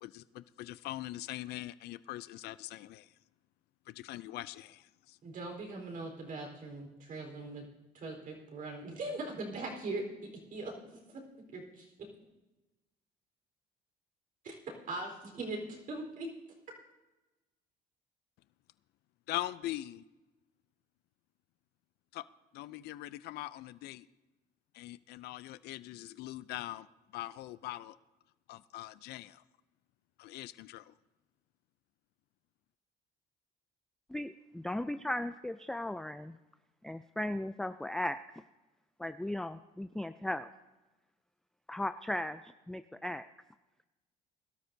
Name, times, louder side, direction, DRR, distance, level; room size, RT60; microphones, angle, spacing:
voice 1, 0.0-3.1 3.9-4.9 19.3-20.0 22.1-22.2 22.5-24.1 24.7-26.9 27.1-28.0 28.5-29.4 30.2-30.9, left 15 dB, 75° left, 0.4 m, -42 dB
voice 2, 5.2-7.7 7.9-10.1 10.5-10.7 11.1-11.2 11.5-11.9 14.4-14.5 14.9-16.3, right 2 dB, 55° right, 4.1 m, -40 dB
voice 3, 34.1-36.4 36.8-38.2 39.0-40.5 41.7-43.3, left 1 dB, 5° left, 0.3 m, -37 dB
22.0 x 12.5 x 2.7 m
cardioid pair, 110°, 17 cm